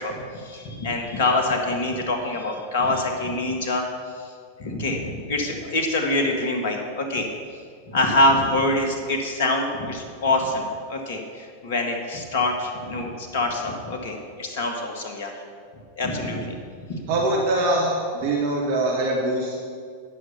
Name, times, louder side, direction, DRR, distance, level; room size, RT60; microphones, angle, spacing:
voice 1, 0.0-3.8 4.1-4.3 4.6-7.3 7.9-15.3 16.0-16.6 16.9-17.0, left 2 dB, 55° left, 3 dB, 1.6 m, -25 dB
voice 2, 17.1-19.6, right 2 dB, 50° right, -2 dB, 1.5 m, -23 dB
10.5 x 6.4 x 6.9 m, 2.1 s
figure-of-eight pair, 90°, 0 cm